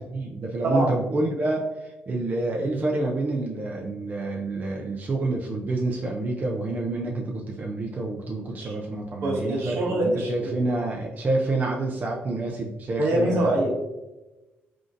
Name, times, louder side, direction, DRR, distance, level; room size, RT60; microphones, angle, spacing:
voice 1, 0.1-13.5, right 2 dB, 35° right, -1 dB, 0.4 m, -28 dB
voice 2, 9.2-10.3 13.0-13.7, right 1 dB, 75° right, -1 dB, 0.9 m, -24 dB
3.5 x 2.5 x 2.5 m, 1.1 s
cardioid pair, 90°, 5 cm